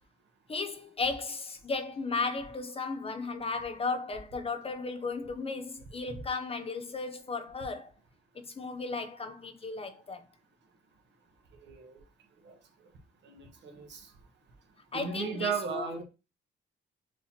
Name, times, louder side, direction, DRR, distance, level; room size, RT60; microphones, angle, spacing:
voice 1, 0.5-7.9 8.3-10.3 14.9-15.9, left 4 dB, 30° left, 0.5 m, -35 dB
voice 2, 11.6-12.0 12.4-12.5 13.2-14.1 14.9-16.0, right 6 dB, 65° right, 1.2 m, -36 dB
6.4 x 2.8 x 2.8 m
cardioid pair, 90°, 20 cm